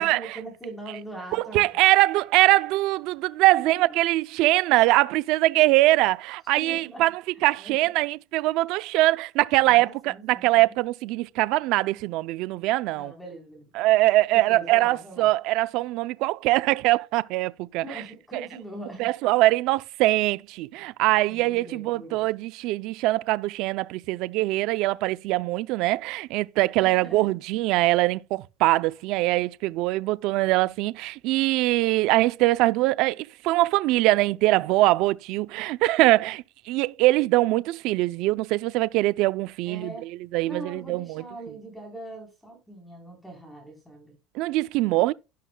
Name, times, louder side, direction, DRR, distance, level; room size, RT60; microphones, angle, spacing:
voice 1, 0.0-1.8 3.5-3.8 6.6-7.0 7.6-7.7 9.6-10.8 12.9-13.7 14.3-15.3 17.8-19.1 21.3-22.3 26.8-27.4 39.7-40.1 40.4-44.2, right 2 dB, 5° left, 3.7 m, -41 dB
voice 2, 1.3-7.1 7.4-13.1 13.7-18.0 19.0-39.9 40.3-41.2 44.3-45.1, right 18 dB, 50° right, 0.4 m, -22 dB
12.0 x 11.0 x 2.2 m
cardioid pair, 175°, 0 cm